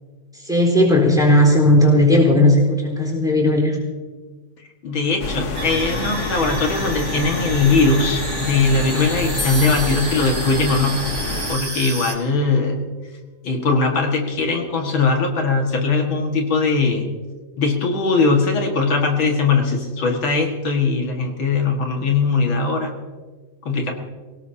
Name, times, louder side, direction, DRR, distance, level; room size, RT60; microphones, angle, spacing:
voice 1, 0.3-3.8 21.9-22.0, left 1 dB, ahead, -1 dB, 4.0 m, -16 dB
voice 2, 4.8-11.0 11.5-12.8 13.4-17.1 17.6-23.0 23.7-23.9, left 4 dB, 85° left, 2 dB, 2.7 m, -20 dB
sound 1, 5.2-11.6, left 3 dB, 45° left, 1.2 m, -27 dB
sound 2, 5.5-12.1, right 2 dB, 75° right, 4.0 m, -31 dB
sound 3, 9.4-11.0, left 3 dB, 20° left, 4.6 m, -33 dB
26.5 x 17.5 x 2.8 m, 1.4 s
omnidirectional pair, 2.1 m